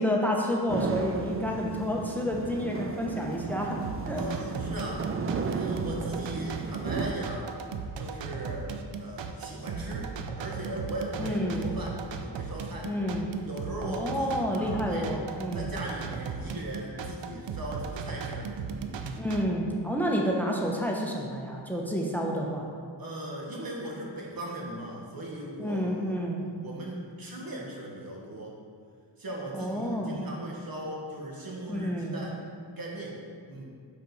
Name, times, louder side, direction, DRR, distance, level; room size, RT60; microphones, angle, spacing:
voice 1, 0.0-4.2 11.2-11.7 12.9-13.3 13.8-15.7 19.2-22.6 25.6-26.4 29.5-30.2 31.7-32.1, equal, 5° left, -1 dB, 0.8 m, -29 dB
sound 1, 0.7-7.2, right 4 dB, 30° right, 0.4 m, -34 dB
sound 2, 3.8-19.4, right 5 dB, 90° right, 0.5 m, -37 dB
voice 2, 4.2-5.1 5.4-7.5 8.0-8.7 9.0-10.1 10.4-12.9 13.4-15.1 15.5-19.0 23.0-26.0 26.5-28.6 29.2-32.4 32.8-33.2 33.5-33.7, right 1 dB, 55° right, -2 dB, 1.5 m, -38 dB
6.3 x 5.1 x 4.0 m, 2.1 s
wide cardioid pair, 85°, 44 cm